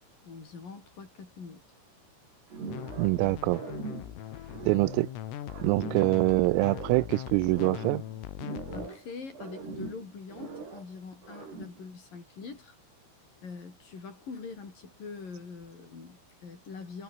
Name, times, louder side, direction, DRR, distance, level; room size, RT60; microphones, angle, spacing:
voice 1, 0.2-1.6 8.7-12.8 13.4-17.0, left 4 dB, 45° left, 6.8 m, -44 dB
sound 1, 2.5-3.2 3.5-5.2 5.5-7.2 7.5-9.1 9.3-10.9 11.2-11.9, right 5 dB, 55° right, 8.8 m, -41 dB
sound 2, 2.7-8.9, left 11 dB, 85° left, 5.0 m, -40 dB
voice 2, 3.0-3.6 4.7-5.1 5.6-8.0, right 23 dB, 90° right, 3.3 m, -25 dB
omnidirectional pair, 5.8 m